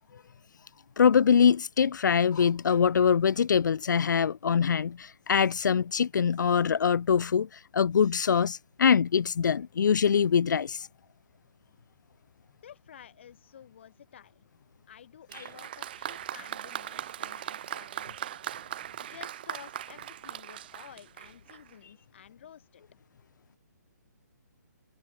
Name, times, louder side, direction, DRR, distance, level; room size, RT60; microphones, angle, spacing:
voice 1, 1.0-10.9, left 7 dB, 80° left, 0.4 m, -24 dB
voice 2, 12.6-14.5 14.9-18.4 19.0-22.8, left 9 dB, 40° left, 3.1 m, -51 dB
Applause, 15.3-21.7, right 11 dB, 30° right, 1.4 m, -39 dB
hypercardioid pair, 170°, 10 cm